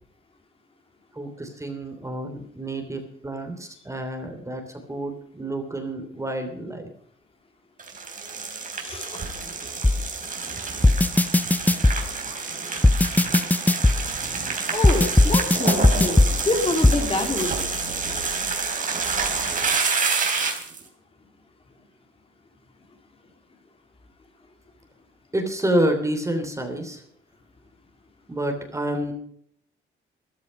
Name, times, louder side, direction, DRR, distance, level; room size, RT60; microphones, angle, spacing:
voice 1, 1.1-6.9 25.3-27.0 28.3-29.1, right 1 dB, 15° right, 5 dB, 3.1 m, -28 dB
sound 1, 7.8-20.8, right 4 dB, 40° right, 3.7 m, -28 dB
voice 2, 8.8-9.2 14.7-17.5, left 2 dB, 30° left, 3 dB, 3.3 m, -26 dB
sound 2, 9.8-10.0 10.8-12.0 12.8-14.0 14.8-16.3 16.8-17.0, left 2 dB, 10° left, 0.7 m, -16 dB
14.0 x 12.5 x 5.3 m, 0.68 s
cardioid pair, 90°, 20 cm